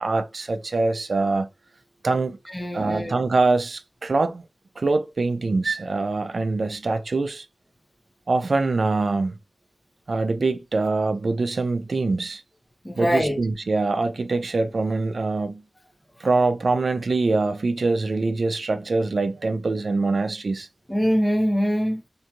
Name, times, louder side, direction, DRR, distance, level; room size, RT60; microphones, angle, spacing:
voice 1, 0.0-1.5 2.0-2.4 2.7-4.4 4.8-7.5 8.3-9.4 10.1-12.4 13.0-15.6 16.2-20.7, right 3 dB, 75° right, 0.3 m, -24 dB
voice 2, 2.5-3.2 12.8-13.4 20.9-22.0, equal, 15° left, 0.7 m, -23 dB
2.9 x 2.6 x 2.3 m
wide cardioid pair, 75°, 0 cm